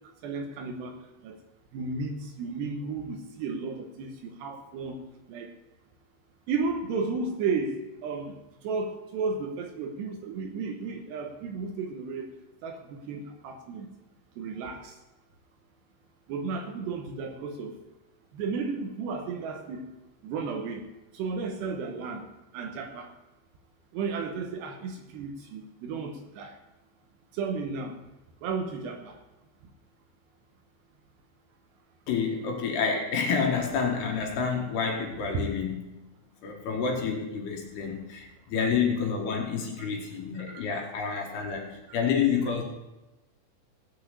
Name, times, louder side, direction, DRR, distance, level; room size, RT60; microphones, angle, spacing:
voice 1, 0.2-1.0 1.2-1.4 1.7-5.0 5.3-5.5 6.5-8.4 8.6-12.3 12.6-13.9 14.4-14.9 16.3-17.7 18.3-19.8 20.2-20.8 21.1-22.2 22.5-23.1 23.9-26.6 27.3-28.0 28.4-29.2 35.3-35.4 38.6-38.7 39.8-39.9 40.5-40.6 41.1-41.2, right 4 dB, 70° right, 5 dB, 2.9 m, -33 dB
voice 2, 32.1-35.8 36.4-42.6, left 6 dB, 65° left, 1 dB, 3.2 m, -28 dB
16.5 x 5.5 x 8.2 m, 1.0 s
omnidirectional pair, 5.5 m